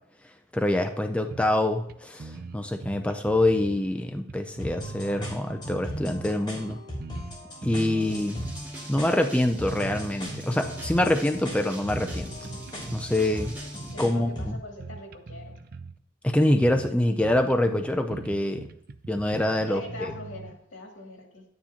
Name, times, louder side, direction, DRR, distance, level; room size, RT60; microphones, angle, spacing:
voice 1, 0.5-6.8 7.6-8.4 8.9-12.4 12.9-13.5 14.0-14.6 16.2-18.7 19.1-19.8, left 1 dB, 5° left, 5 dB, 0.5 m, -25 dB
sound 1, 1.3-1.6 1.9-2.0 2.2-3.8 4.3-6.4 6.7-8.6 9.0-9.2 9.6-11.2 11.5-12.2 12.4-13.5 13.9-16.0 16.3-16.4 16.6-16.9 17.2-20.5, right 4 dB, 50° right, 0.5 m, -41 dB
sound 2, 4.6-14.6, equal, 25° left, 3.5 m, -38 dB
sound 3, 8.0-13.9, right 1 dB, 10° right, 2.7 m, -43 dB
voice 2, 13.9-15.5 19.7-21.4, left 2 dB, 85° left, 0 dB, 2.7 m, -42 dB
11.5 x 9.5 x 2.9 m, 0.74 s
head